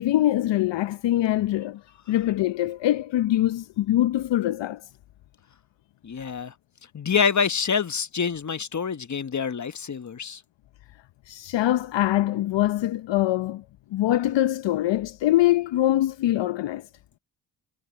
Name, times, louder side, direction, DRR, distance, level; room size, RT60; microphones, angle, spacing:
voice 1, 0.0-4.8 11.3-13.6 13.9-16.9, left 14 dB, 70° left, 0.8 m, -23 dB
voice 2, 6.0-6.5 6.9-10.4, left 6 dB, 40° left, 1.4 m, -26 dB
supercardioid pair, 45°, 46 cm